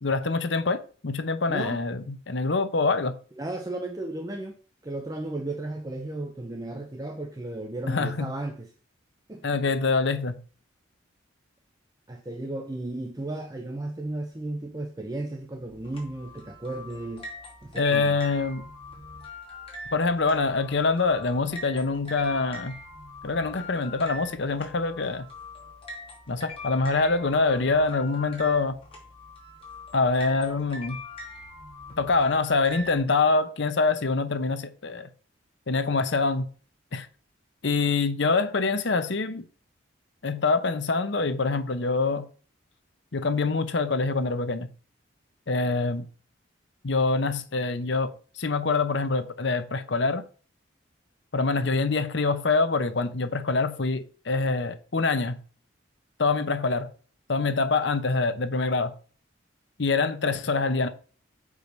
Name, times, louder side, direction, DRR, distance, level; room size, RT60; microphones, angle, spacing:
voice 1, 0.0-3.1 7.9-8.3 9.4-10.4 17.8-18.7 19.9-22.7 23.2-25.3 26.3-28.8 29.9-31.0 32.0-35.1 35.7-36.5 36.9-37.1 37.6-39.4 40.2-42.2 43.1-44.7 45.5-46.0 46.8-50.2 51.3-55.4 56.2-56.9 57.3-58.9 59.8-60.9, left 3 dB, 65° left, 0.8 m, -25 dB
voice 2, 1.5-1.8 3.4-8.7 9.3-9.6 12.1-17.3 17.6-18.2, right 2 dB, 20° right, 0.6 m, -34 dB
sound 1, 15.7-33.0, left 2 dB, 30° left, 2.5 m, -43 dB
6.9 x 4.9 x 5.2 m
head